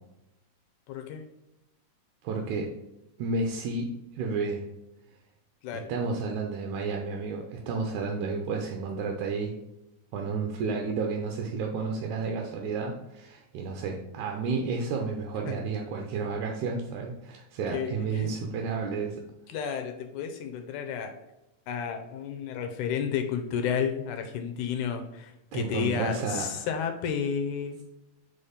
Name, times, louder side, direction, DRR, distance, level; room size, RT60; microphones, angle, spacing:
voice 1, 0.9-1.2 5.6-5.9 15.5-15.6 17.7-18.3 19.5-21.1 21.7-27.8, left 7 dB, 80° left, 6 dB, 2.0 m, -32 dB
voice 2, 2.2-2.7 3.2-4.6 5.7-9.5 10.1-19.2 25.5-26.7, right 4 dB, 80° right, 2 dB, 2.0 m, -31 dB
4.9 x 4.3 x 5.0 m, 0.90 s
omnidirectional pair, 3.6 m